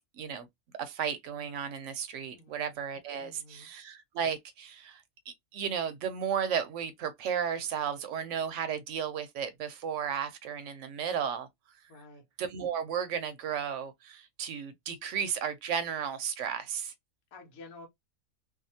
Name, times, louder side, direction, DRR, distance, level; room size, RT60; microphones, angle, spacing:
voice 1, 0.2-0.5 0.8-11.5 12.4-16.9, right 7 dB, 70° right, 0.8 m, -34 dB
voice 2, 2.3-2.6 3.2-3.7 11.9-12.2 17.3-17.9, left 2 dB, 80° left, 1.3 m, -50 dB
2.7 x 2.3 x 2.7 m
omnidirectional pair, 1.5 m